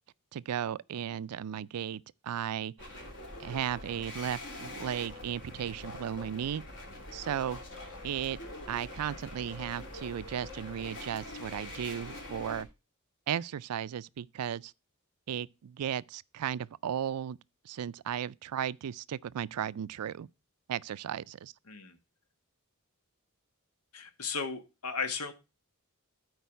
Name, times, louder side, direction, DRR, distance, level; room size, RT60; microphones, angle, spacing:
voice 1, 0.3-3.1 3.4-6.6 7.1-8.4 8.7-12.7 13.3-14.7 15.3-17.4 17.6-20.3 20.7-21.5, right 9 dB, 85° right, 0.4 m, -35 dB
sound 1, 2.8-12.6, left 1 dB, 55° left, 3.3 m, -44 dB
voice 2, 21.7-22.0 23.9-25.3, left 5 dB, 80° left, 1.4 m, -35 dB
12.5 x 4.7 x 4.5 m
head